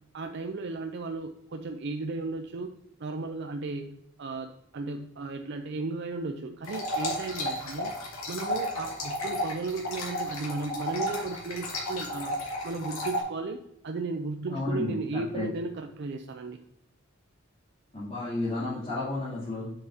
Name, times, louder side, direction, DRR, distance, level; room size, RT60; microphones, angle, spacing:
voice 1, 0.1-2.7 3.0-7.9 8.3-12.4 12.6-16.6, right 3 dB, 55° right, 6 dB, 0.5 m, -35 dB
sound 1, 6.6-13.2, left 1 dB, 90° left, 2.4 m, -33 dB
voice 2, 14.5-15.5 17.9-19.7, left 2 dB, 30° left, -12 dB, 2.9 m, -32 dB
7.8 x 6.8 x 2.8 m, 0.79 s
head